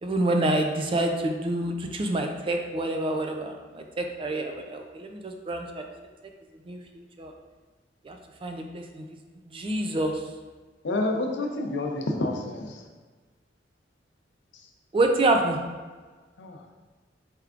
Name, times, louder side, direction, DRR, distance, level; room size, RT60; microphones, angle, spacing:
voice 1, 0.0-5.8 6.7-7.3 8.0-9.2 9.4-10.2 14.9-15.6, right 2 dB, 30° right, 3 dB, 0.4 m, -27 dB
voice 2, 10.8-12.8 16.4-16.6, left 2 dB, 70° left, 3 dB, 0.5 m, -28 dB
4.4 x 3.5 x 2.4 m, 1.4 s
head